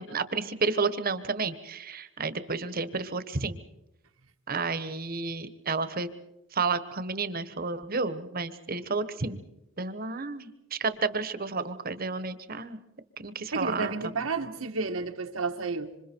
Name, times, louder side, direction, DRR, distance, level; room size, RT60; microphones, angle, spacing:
voice 1, 0.0-3.6 4.5-6.1 6.5-9.4 9.8-12.8 13.2-14.1, right 4 dB, 45° right, 1.3 m, -31 dB
voice 2, 13.5-15.9, right 4 dB, 85° right, 1.7 m, -31 dB
27.0 x 26.0 x 4.6 m
head